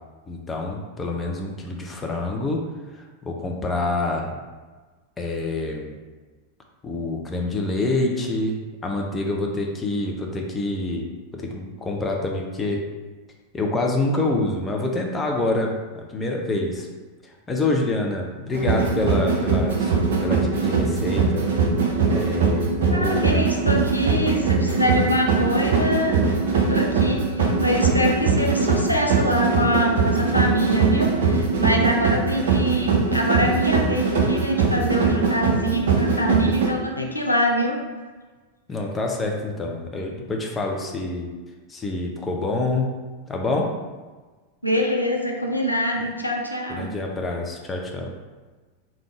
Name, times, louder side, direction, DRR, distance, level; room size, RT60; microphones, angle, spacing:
voice 1, 0.3-2.6 3.2-4.3 5.2-5.9 6.8-8.6 8.8-12.8 13.5-16.9 17.5-19.9 20.2-21.5 22.1-23.4 38.7-41.3 41.7-42.9 43.3-43.7 46.7-48.1, left 2 dB, 15° left, 0 dB, 0.5 m, -26 dB
sound 1, 18.5-36.7, right 4 dB, 60° right, 0.5 m, -21 dB
voice 2, 22.9-26.4 26.7-37.8 44.6-46.9, equal, 85° left, 0 dB, 0.4 m, -24 dB
3.4 x 2.5 x 3.1 m, 1.3 s
figure-of-eight pair, 90°, 0 cm